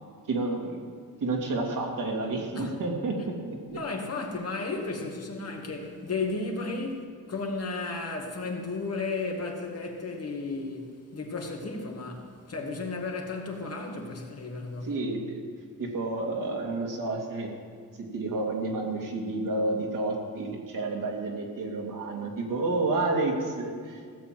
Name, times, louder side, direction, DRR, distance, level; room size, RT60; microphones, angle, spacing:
voice 1, 0.3-0.8 1.2-3.2 3.5-3.8 14.8-15.4 15.8-17.5 18.1-24.0, right 2 dB, 60° right, 2.6 m, -30 dB
voice 2, 3.7-14.9, left 3 dB, 45° left, 2.1 m, -34 dB
16.0 x 7.1 x 7.7 m
cardioid pair, 105°, 36 cm